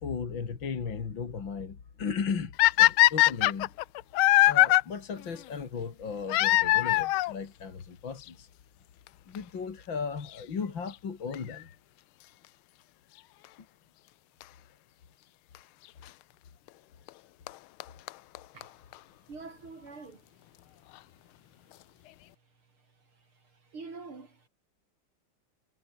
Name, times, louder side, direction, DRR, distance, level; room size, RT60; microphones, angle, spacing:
voice 1, 0.0-3.7 4.5-8.5 9.3-11.7, left 6 dB, 60° left, 3.1 m, -36 dB
sound 1, 2.6-4.8 6.3-7.3 8.3-8.4 9.1-9.2 9.3-9.4 11.3-11.6 14.4-14.5 15.5-15.6 17.1-17.2 17.5-17.6 17.8-17.9 18.1-18.2 18.3-18.4 18.6-18.7 18.9-19.0, left 17 dB, 85° left, 1.4 m, -21 dB
voice 2, 19.3-20.2 23.6-24.5, right 4 dB, 80° right, 5.3 m, -45 dB
omnidirectional pair, 2.3 m